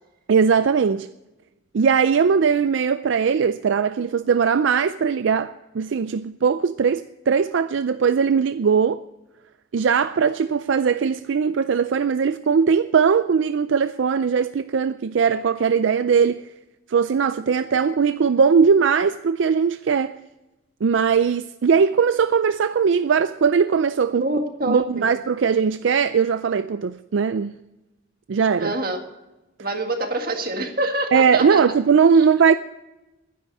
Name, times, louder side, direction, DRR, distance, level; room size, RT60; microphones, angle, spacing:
voice 1, 0.3-1.1 1.7-9.0 9.7-16.4 16.9-20.2 20.8-24.3 24.6-27.5 28.3-28.7 31.1-32.6, right 6 dB, 75° right, 0.4 m, -19 dB
voice 2, 24.2-25.1 28.6-29.0 29.6-31.6, right 2 dB, 50° right, 1.8 m, -26 dB
11.5 x 10.5 x 7.6 m
head